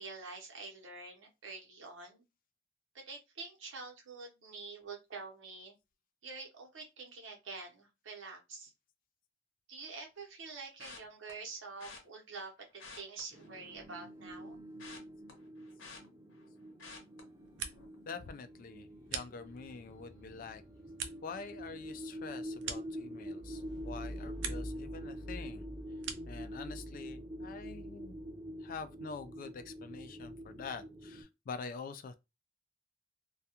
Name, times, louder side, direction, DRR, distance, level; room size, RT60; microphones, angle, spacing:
voice 1, 0.0-2.2 2.9-5.7 6.2-8.7 9.7-14.6, right 4 dB, 90° right, 0.9 m, -47 dB
sound 1, 10.8-11.3 11.8-12.0 12.7-13.9 14.3-16.5 16.8-17.2 17.7-17.9 18.2-18.3, left 4 dB, 85° left, 0.8 m, -51 dB
sound 2, 13.3-31.2, equal, 15° right, 0.6 m, -45 dB
sound 3, 17.3-18.1 18.4-19.8 20.3-23.5 23.9-24.8 25.1-26.5, right 7 dB, 70° right, 0.4 m, -45 dB
voice 2, 18.1-20.6 21.2-25.7 26.3-28.2 28.6-32.1, left 5 dB, 45° left, 0.3 m, -46 dB
2.3 x 2.3 x 2.8 m
head